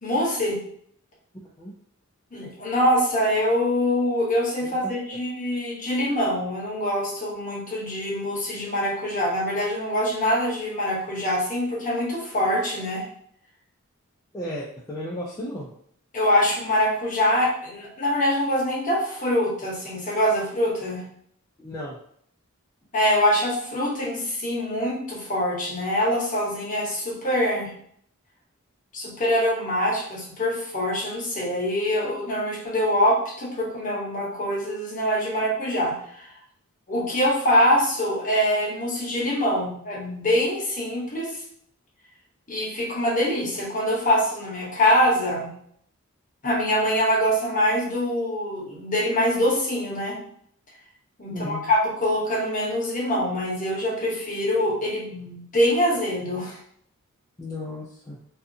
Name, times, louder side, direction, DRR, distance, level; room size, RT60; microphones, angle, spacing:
voice 1, 0.0-0.6 2.3-13.0 16.1-21.0 22.9-27.7 28.9-36.3 36.9-41.3 42.5-45.5 46.4-50.2 51.2-56.6, equal, 35° left, -4 dB, 0.8 m, -24 dB
voice 2, 4.6-4.9 14.3-15.7 21.6-22.0 51.3-51.7 57.4-58.2, left 1 dB, 15° left, -5 dB, 0.3 m, -34 dB
2.5 x 2.3 x 2.6 m, 0.65 s
head